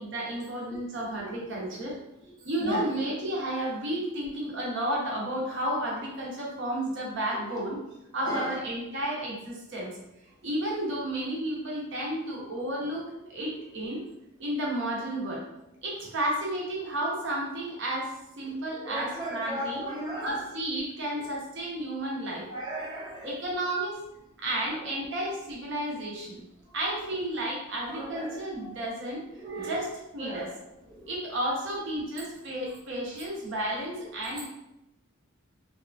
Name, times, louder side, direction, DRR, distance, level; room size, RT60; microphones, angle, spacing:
voice 1, 0.0-2.0 2.4-7.8 8.1-10.0 10.4-14.0 14.4-15.4 15.8-19.9 20.2-22.4 23.2-24.0 24.4-26.4 26.7-29.2 29.6-30.5 31.1-34.5, right 1 dB, 55° right, -3 dB, 0.7 m, -32 dB
voice 2, 18.8-20.3 22.5-23.3 27.9-28.2 28.6-28.7 29.4-29.8 30.2-30.5, right 1 dB, 20° right, -5 dB, 0.6 m, -35 dB
2.7 x 2.4 x 2.3 m, 0.89 s
head